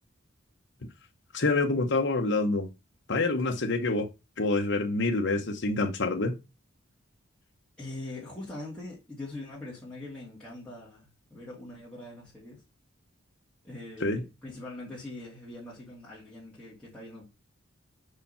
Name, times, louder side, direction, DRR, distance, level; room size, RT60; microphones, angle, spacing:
voice 1, 1.3-2.7 3.1-4.1 4.4-6.3 14.0-14.2, left 3 dB, 55° left, 0.9 m, -26 dB
voice 2, 7.8-12.6 13.6-17.2, left 2 dB, 5° left, 2.6 m, -42 dB
5.6 x 5.0 x 5.6 m
head